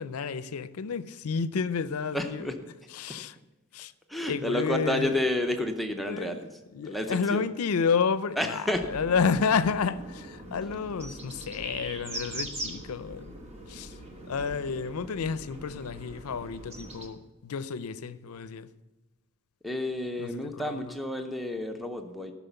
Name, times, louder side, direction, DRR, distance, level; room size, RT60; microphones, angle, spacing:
voice 1, 0.0-2.5 2.9-3.4 3.7-3.9 4.3-5.2 6.1-6.4 6.7-13.3 13.7-13.9 14.3-18.7 20.2-20.9, left 5 dB, 85° left, 0.5 m, -30 dB
voice 2, 2.1-2.6 4.1-6.5 6.8-7.4 8.4-8.9 19.6-22.3, left 1 dB, ahead, 0.6 m, -30 dB
sound 1, 8.7-17.1, right 1 dB, 30° right, 1.1 m, -41 dB
13.0 x 6.0 x 6.9 m
head